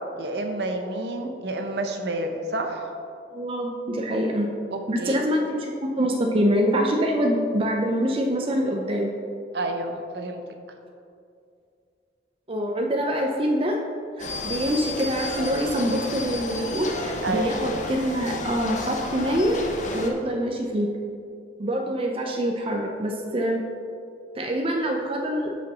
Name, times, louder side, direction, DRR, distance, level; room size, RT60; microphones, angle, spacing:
voice 1, 0.2-2.9 4.1-4.2 4.7-5.2 9.5-10.4 17.2-17.5, right 2 dB, 60° right, 5 dB, 0.7 m, -29 dB
voice 2, 3.3-4.5 4.9-9.1 12.5-13.8 14.2-19.7 19.9-20.9 21.6-23.6 24.3-25.5, equal, 30° right, 1 dB, 0.6 m, -25 dB
sound 1, 14.2-20.1, left 2 dB, 40° left, 0.8 m, -32 dB
6.1 x 5.7 x 6.0 m, 2.4 s
head